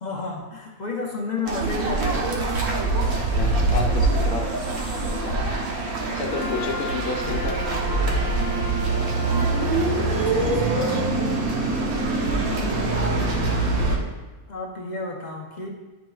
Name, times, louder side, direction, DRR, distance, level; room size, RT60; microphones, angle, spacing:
voice 1, 0.0-2.3 7.2-8.5 10.1-11.1 14.5-15.7, left 3 dB, 50° left, -1 dB, 0.5 m, -33 dB
sound 1, 1.5-14.0, right 2 dB, 70° right, 1.4 m, -24 dB
voice 2, 3.3-4.4 5.0-5.4 6.1-7.5, left 4 dB, 85° left, 0 dB, 1.3 m, -30 dB
Wind instrument woodwind instrument, 6.3-10.0, right 1 dB, 15° left, 1.0 m, -34 dB
10.0 x 5.1 x 2.3 m, 1.2 s
omnidirectional pair, 1.5 m